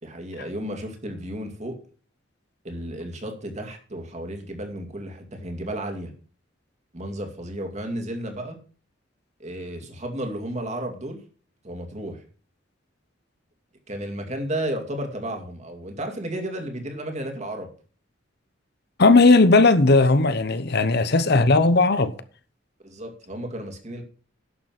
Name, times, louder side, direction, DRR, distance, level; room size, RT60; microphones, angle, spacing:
voice 1, 0.0-1.8 2.6-6.1 6.9-8.6 9.4-11.2 11.6-12.2 13.9-17.7 22.8-24.0, right 1 dB, 35° right, 2.4 m, -33 dB
voice 2, 19.0-22.1, left 3 dB, 55° left, 0.9 m, -17 dB
11.5 x 6.9 x 6.0 m
head